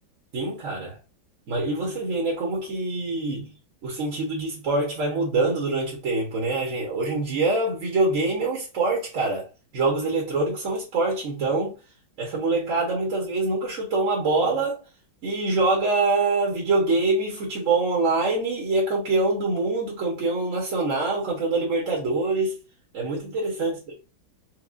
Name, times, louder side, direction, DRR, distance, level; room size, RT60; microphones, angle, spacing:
voice 1, 0.3-1.0 1.5-3.5 3.8-9.5 9.7-11.7 12.2-14.8 15.2-22.6 22.9-23.9, right 3 dB, 45° right, 1.2 m, -25 dB
4.7 x 2.3 x 2.5 m
omnidirectional pair, 2.3 m